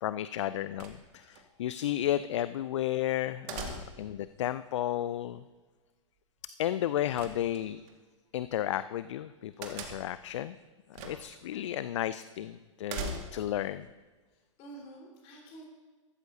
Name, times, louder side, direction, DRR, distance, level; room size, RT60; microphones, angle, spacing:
voice 1, 0.0-5.4 6.6-7.8 8.3-10.6 11.0-13.9, left 12 dB, 65° left, 15 dB, 0.4 m, -33 dB
sound 1, 0.8-1.4 3.5-4.2 7.2-7.9 9.6-10.2 10.9-11.4 11.7-11.8 12.9-13.6, right 4 dB, 40° right, 1.8 m, -40 dB
voice 2, 14.3-15.6, right 2 dB, 40° left, -2 dB, 4.1 m, -50 dB
14.0 x 13.5 x 2.7 m, 1.4 s
figure-of-eight pair, 105°, 17 cm